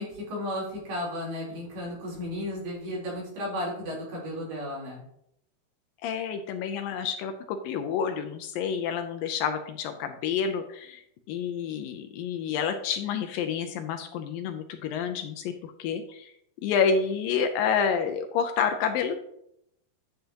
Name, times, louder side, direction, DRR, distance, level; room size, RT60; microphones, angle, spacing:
voice 1, 0.0-5.0, left 1 dB, 85° right, -5 dB, 5.6 m, -34 dB
voice 2, 6.0-16.3 16.6-19.2, left 6 dB, 80° left, 6 dB, 2.2 m, -29 dB
10.0 x 7.7 x 2.9 m, 0.75 s
omnidirectional pair, 4.4 m